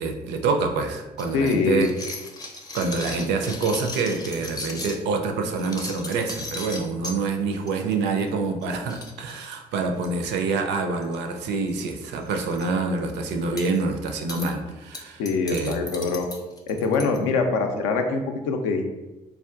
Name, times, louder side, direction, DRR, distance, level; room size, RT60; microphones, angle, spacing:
voice 1, 0.0-1.9 2.7-15.2 15.5-15.8, right 4 dB, 55° right, 5 dB, 0.4 m, -26 dB
sound 1, 1.2-5.0 5.5-7.2 7.7-7.9 8.2-8.3 8.6-8.7 8.9-10.3 11.0-11.4 11.7-11.8 12.2-12.6 13.6-13.8 14.3-14.5 14.9-17.2, left 2 dB, 20° left, 0.6 m, -37 dB
voice 2, 1.3-1.9 15.2-16.3 16.7-18.8, left 4 dB, 65° left, 5 dB, 0.4 m, -24 dB
3.4 x 2.4 x 2.3 m, 1.1 s
figure-of-eight pair, 45°, 21 cm